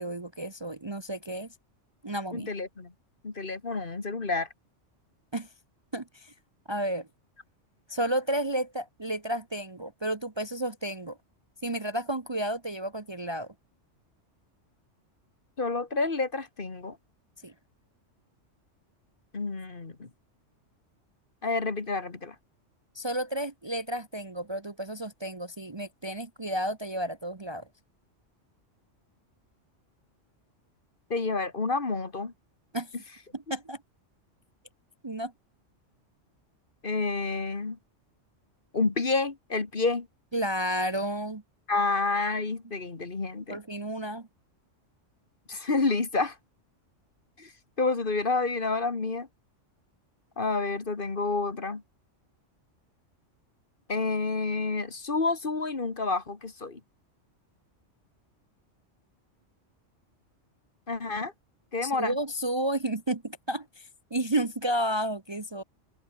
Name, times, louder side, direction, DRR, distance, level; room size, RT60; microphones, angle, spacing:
voice 1, 0.0-1.5 2.0-2.5 5.3-5.5 5.9-6.3 6.7-7.1 7.9-11.2 11.6-13.5 17.4-17.5 22.9-27.6 32.7-32.9 33.3-33.8 35.0-35.3 40.3-41.4 43.5-44.3 61.8-65.6, right 1 dB, 25° right, 1.0 m, -32 dB
voice 2, 2.3-2.9 3.2-4.5 15.6-17.0 19.3-20.1 21.4-22.4 31.1-32.3 36.8-37.8 38.7-40.1 41.7-43.6 45.5-46.4 47.4-47.5 47.8-49.3 50.4-51.8 53.9-56.8 60.9-61.3 61.7-62.2, left 3 dB, 45° left, 2.0 m, -29 dB
open air
omnidirectional pair, 1.3 m